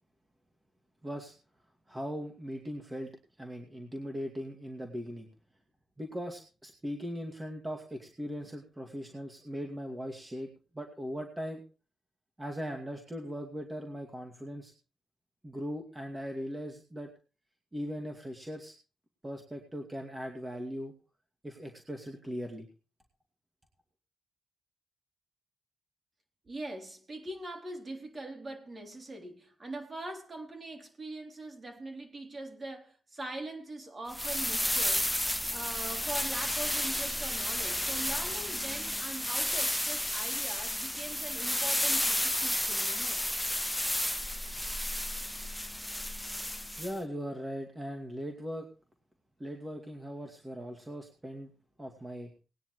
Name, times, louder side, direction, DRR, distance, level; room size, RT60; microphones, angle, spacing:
voice 1, 1.0-1.3 1.9-3.1 3.4-5.3 6.0-10.5 10.7-11.6 12.4-14.7 15.4-17.1 17.7-18.7 19.2-20.9 21.4-22.7 46.8-48.7 49.4-51.5 51.8-52.3, equal, 15° right, 2.3 m, -39 dB
voice 2, 26.5-43.2, right 2 dB, 35° right, 3.6 m, -42 dB
sound 1, 34.1-46.9, left 1 dB, 5° left, 0.9 m, -32 dB
19.5 x 9.9 x 3.2 m
cardioid pair, 75°, 0 cm